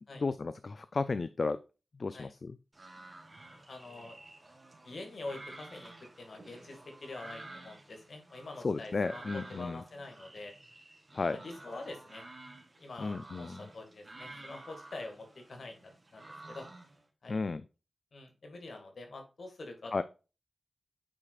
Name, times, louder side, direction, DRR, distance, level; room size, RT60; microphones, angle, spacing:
voice 1, 0.2-1.6 2.0-2.5 8.6-9.8 11.1-11.4 13.0-13.7 17.3-17.6 19.9-20.0, left 3 dB, 55° left, 13 dB, 0.4 m, -33 dB
sound 1, 2.7-17.0, right 2 dB, 35° right, 2.4 m, -51 dB
voice 2, 3.5-4.2 4.8-5.9 6.2-10.5 11.3-12.2 12.8-16.7 17.2-17.4 18.1-20.0, left 2 dB, 70° left, 4 dB, 2.0 m, -46 dB
8.6 x 4.8 x 2.4 m, 0.32 s
cardioid pair, 60°, 0 cm